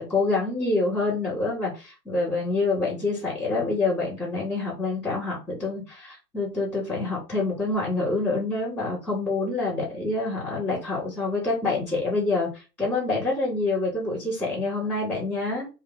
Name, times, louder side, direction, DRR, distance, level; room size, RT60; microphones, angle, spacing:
voice 1, 0.0-15.7, left 3 dB, 5° left, -15 dB, 2.1 m, -27 dB
3.6 x 2.8 x 4.1 m, 0.30 s
hypercardioid pair, 160°, 50 cm